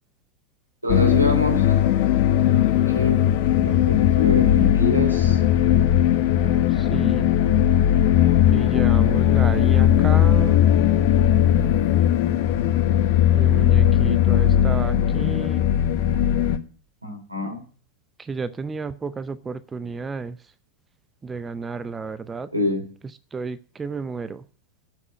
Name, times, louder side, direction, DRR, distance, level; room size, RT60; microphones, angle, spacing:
voice 1, 0.8-1.8 2.5-3.3 3.6-5.4 17.0-17.6 22.5-22.9, left 1 dB, 85° right, 3.2 m, -26 dB
sound 1, 0.9-16.6, left 11 dB, 45° left, 1.1 m, -18 dB
voice 2, 6.7-7.3 8.5-10.6 13.3-15.7 18.2-20.4 21.2-22.5 23.3-24.4, right 4 dB, 15° right, 0.6 m, -32 dB
9.6 x 7.4 x 9.3 m
figure-of-eight pair, 90°, 0 cm